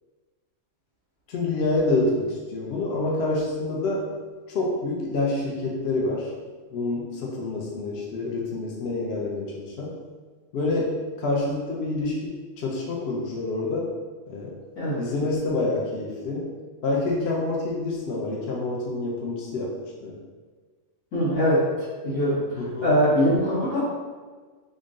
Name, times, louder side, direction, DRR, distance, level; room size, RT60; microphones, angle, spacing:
voice 1, 1.3-4.1 4.5-6.3 6.7-10.0 10.5-13.9 14.3-14.5 14.9-16.5 16.8-19.7 20.0-20.2 22.6-22.9, left 2 dB, 55° left, -3 dB, 0.8 m, -27 dB
voice 2, 21.1-21.6 22.0-23.8, equal, 85° left, -11 dB, 1.9 m, -22 dB
3.7 x 2.6 x 3.6 m, 1.4 s
omnidirectional pair, 1.4 m